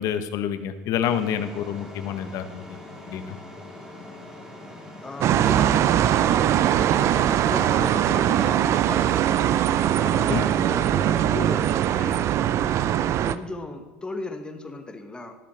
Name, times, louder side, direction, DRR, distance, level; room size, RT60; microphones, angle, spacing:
voice 1, 0.0-2.6 3.1-3.4 10.3-10.4, left 9 dB, 55° left, 11 dB, 0.9 m, -28 dB
sound 1, 1.0-8.2, left 1 dB, 10° right, 2.1 m, -42 dB
voice 2, 5.0-6.2 7.4-9.4 10.0-12.3 13.2-15.4, left 2 dB, 15° left, 7 dB, 1.1 m, -36 dB
sound 2, 5.2-13.4, right 11 dB, 45° right, 0.4 m, -21 dB
12.5 x 6.9 x 4.4 m, 1.3 s
hypercardioid pair, 95°, 7 cm